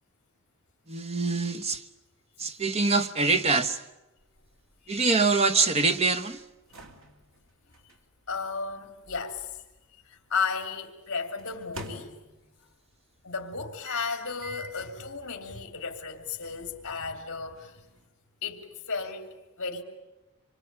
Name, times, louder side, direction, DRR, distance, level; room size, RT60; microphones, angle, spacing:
voice 1, 0.9-1.8 2.4-3.8 4.9-6.4, right 3 dB, 30° right, 1.0 m, -24 dB
sound 1, 4.2-10.3 11.4-12.7 13.8-14.9 15.4-15.5 16.4-18.1, equal, 70° right, 3.0 m, -47 dB
voice 2, 8.3-9.5 10.0-12.1 13.2-17.7 18.4-19.3 19.6-19.8, left 5 dB, 55° left, 2.9 m, -34 dB
26.0 x 24.0 x 8.8 m
head